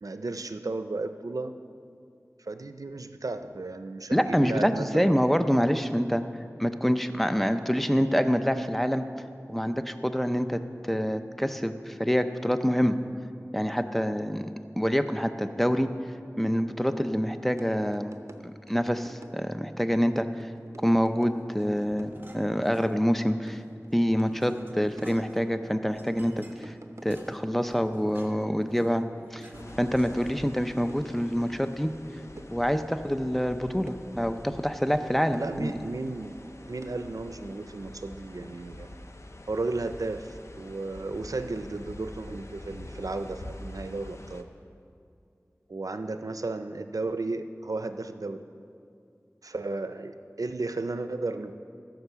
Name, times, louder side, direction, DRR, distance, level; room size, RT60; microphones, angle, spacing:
voice 1, 0.0-1.5 2.4-5.5 35.4-36.4 36.7-38.9 39.5-44.5 45.7-48.4 49.4-51.5, right 3 dB, 90° right, 9 dB, 0.5 m, -34 dB
voice 2, 4.1-6.2 6.6-9.0 9.5-13.0 13.5-15.9 16.4-18.1 18.7-20.3 20.8-23.6 23.9-26.7 27.0-29.0 29.3-29.4 29.8-31.9 32.5-35.7, equal, 5° left, 9 dB, 0.6 m, -26 dB
sound 1, 17.6-17.7 17.9-18.4 18.7-19.7 20.0-21.6 21.9-22.8 23.1-23.2 23.5-24.3 24.6-25.4 26.1-27.3 27.8-28.3 28.6-30.2 30.5-31.7 32.0-33.2 33.5-34.6 34.9-36.2 36.4-37.2, right 2 dB, 60° right, 0.7 m, -49 dB
sound 2, 21.5-23.2 23.6-30.6, right 1 dB, 35° right, 1.3 m, -51 dB
sound 3, 29.5-44.4, left 1 dB, 55° left, 0.7 m, -45 dB
14.5 x 6.0 x 6.8 m, 2.4 s
wide cardioid pair, 40°, 6 cm